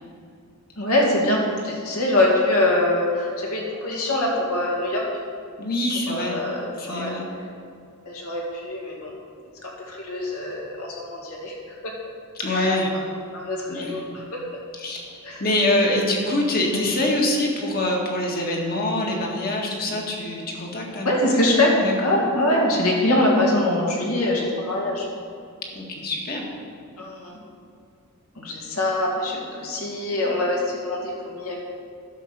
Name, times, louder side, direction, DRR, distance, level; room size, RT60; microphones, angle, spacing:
voice 1, 0.8-5.0 6.1-7.2 8.1-9.1 9.6-11.6 11.8-11.9 12.5-12.7 13.3-14.4 15.2-15.4 16.7-16.8 21.0-21.7 22.0-25.1 27.0-27.4 28.4-31.6, left 1 dB, 75° left, -2 dB, 2.3 m, -23 dB
voice 2, 5.6-6.4 6.8-7.3 12.4-12.9 13.7-14.0 14.7-21.1 21.3-21.4 21.8-21.9 25.7-26.5, left 1 dB, 45° left, -1 dB, 1.7 m, -25 dB
11.5 x 5.7 x 6.6 m, 2.4 s
head